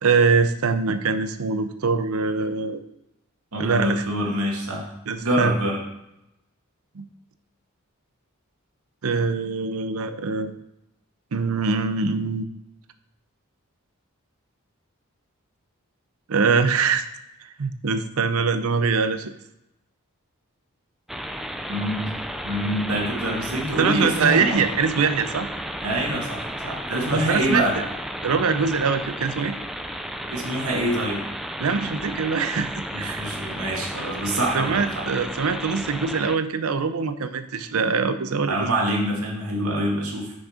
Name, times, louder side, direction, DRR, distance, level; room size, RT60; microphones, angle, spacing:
voice 1, 0.0-2.8 3.6-4.0 5.1-5.5 6.9-7.0 9.0-10.5 11.3-12.4 16.3-17.0 17.6-19.3 23.8-25.5 27.1-27.6 28.2-29.5 31.6-33.2 34.5-38.6, right 5 dB, 75° right, 11 dB, 0.6 m, -23 dB
voice 2, 3.5-4.8 5.2-5.8 21.7-22.1 22.4-24.6 25.8-27.8 30.3-31.2 32.9-35.0 38.5-40.3, right 1 dB, 90° right, -1 dB, 2.0 m, -25 dB
sound 1, 21.1-36.4, equal, ahead, 0.4 m, -33 dB
6.3 x 6.2 x 5.0 m, 0.88 s
head